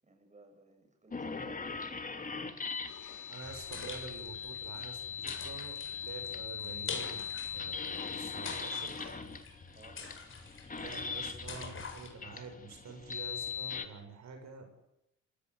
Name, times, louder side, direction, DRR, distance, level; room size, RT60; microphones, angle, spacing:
voice 1, 0.0-2.2 3.0-3.3 9.7-10.0, right 3 dB, 25° right, 4 dB, 7.6 m, -58 dB
sound 1, 1.1-13.9, left 6 dB, 25° left, 2.9 m, -40 dB
sound 2, 2.8-5.6 8.0-9.4, left 9 dB, 80° left, 3.8 m, -58 dB
voice 2, 3.3-7.2 7.5-8.9 10.8-14.9, right 5 dB, 65° right, 4 dB, 6.7 m, -47 dB
sound 3, 3.4-12.1, left 5 dB, 40° left, 6.9 m, -45 dB
27.0 x 19.0 x 8.2 m, 0.84 s
cardioid pair, 90°, 30 cm